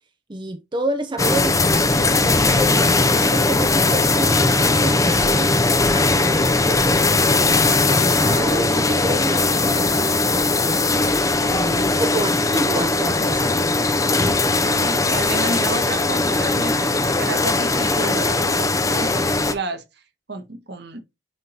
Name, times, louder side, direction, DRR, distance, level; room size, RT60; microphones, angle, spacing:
voice 1, 0.3-10.9 11.5-13.7, right 2 dB, 25° right, 0.7 m, -29 dB
sound 1, 1.2-19.5, left 3 dB, 20° left, 0.8 m, -19 dB
voice 2, 9.7-10.1 14.6-19.8 20.3-21.0, right 3 dB, 60° right, 1.6 m, -31 dB
9.5 x 3.7 x 2.8 m
head